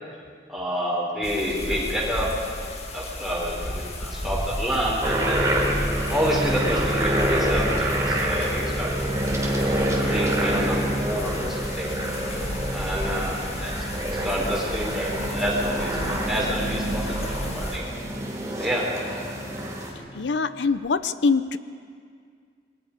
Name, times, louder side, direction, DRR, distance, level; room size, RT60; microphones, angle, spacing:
voice 1, 0.5-2.3 2.9-5.6 6.1-9.3 10.0-11.9 12.3-13.8 14.2-17.8 18.6-18.8, equal, ahead, -5 dB, 5.3 m, -28 dB
sound 1, 1.2-17.8, left 1 dB, 35° left, 1.9 m, -33 dB
sound 2, 5.0-19.9, right 1 dB, 20° right, 3.2 m, -27 dB
voice 2, 20.1-21.6, left 4 dB, 85° left, 13 dB, 0.6 m, -23 dB
27.5 x 22.0 x 5.1 m, 2.1 s
head